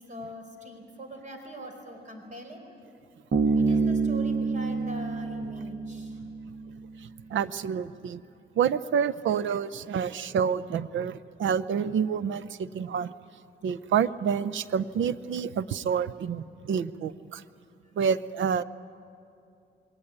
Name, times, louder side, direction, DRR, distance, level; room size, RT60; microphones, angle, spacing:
voice 1, 0.1-2.6 3.5-6.2, right 1 dB, 40° right, 4 dB, 4.5 m, -42 dB
Bass guitar, 3.3-6.8, right 4 dB, 60° right, 2.0 m, -27 dB
voice 2, 7.3-8.2 8.6-13.1 13.6-17.4 18.0-18.6, right 7 dB, 85° right, 16 dB, 0.6 m, -28 dB
21.0 x 18.5 x 9.7 m, 2.6 s
cardioid pair, 105°, 19 cm